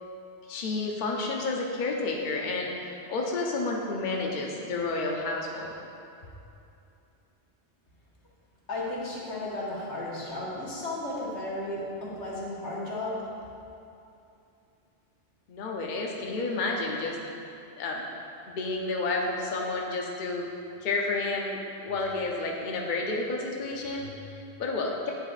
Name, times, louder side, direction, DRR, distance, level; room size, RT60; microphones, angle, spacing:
voice 1, 0.5-5.7 15.5-17.2 17.8-18.0 18.5-20.5 20.8-21.6 21.8-25.1, left 3 dB, 50° left, -1 dB, 0.7 m, -30 dB
voice 2, 8.7-13.2, left 2 dB, 80° left, -6 dB, 1.7 m, -34 dB
9.2 x 6.5 x 2.4 m, 2.7 s
omnidirectional pair, 1.2 m